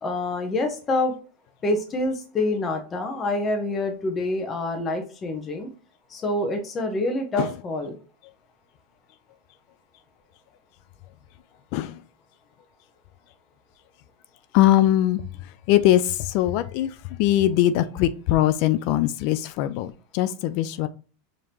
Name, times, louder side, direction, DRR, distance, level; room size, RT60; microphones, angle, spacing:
voice 1, 0.0-1.1 1.6-5.7 6.1-7.9, left 2 dB, 25° left, 0.9 m, -26 dB
voice 2, 14.5-20.9, left 13 dB, 60° left, 0.3 m, -22 dB
4.9 x 2.9 x 2.8 m
hypercardioid pair, 105°, 0 cm